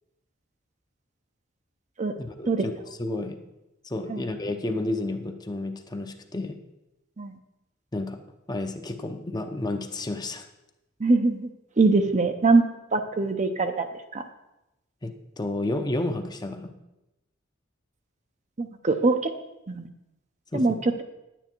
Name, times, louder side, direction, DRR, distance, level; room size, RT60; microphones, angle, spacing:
voice 1, 2.2-2.7 3.0-3.4 3.8-6.6 7.9-8.2 8.5-10.5 15.0-16.7 20.5-20.8, left 2 dB, 20° left, 6 dB, 0.7 m, -31 dB
voice 2, 11.0-11.5 11.8-12.7 12.9-13.9 14.1-14.2 18.6-19.3 19.7-19.9 20.5-21.0, right 3 dB, 35° right, 7 dB, 0.7 m, -22 dB
10.5 x 9.1 x 4.5 m, 0.92 s
head